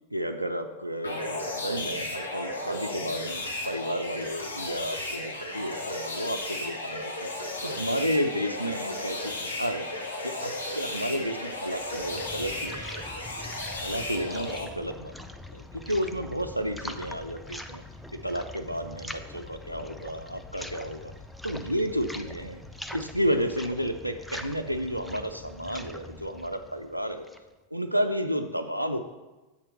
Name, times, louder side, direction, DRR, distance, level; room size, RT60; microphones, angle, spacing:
voice 1, 0.1-7.3 7.6-9.9 10.2-12.9 13.8-15.2 15.5-17.8 18.1-21.1 21.4-22.6 22.9-27.3 27.7-29.0, equal, 90° right, 6 dB, 0.4 m, -31 dB
sound 1, 1.0-14.6, left 1 dB, 75° left, 1.1 m, -34 dB
sound 2, 11.6-27.5, left 1 dB, ahead, 0.4 m, -43 dB
7.3 x 4.4 x 6.0 m, 1.1 s
figure-of-eight pair, 90°, 0 cm